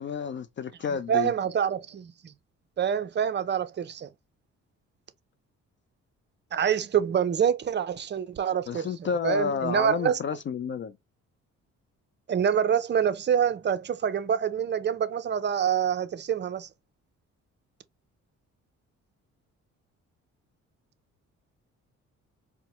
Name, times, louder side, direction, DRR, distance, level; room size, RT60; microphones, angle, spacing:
voice 1, 0.0-1.3 8.7-10.9, left 7 dB, 40° left, 0.4 m, -30 dB
voice 2, 1.1-2.3 2.8-4.1 6.5-10.2 12.3-16.7, right 8 dB, 35° right, 0.5 m, -26 dB
4.5 x 2.1 x 2.9 m
cardioid pair, 90°, 30 cm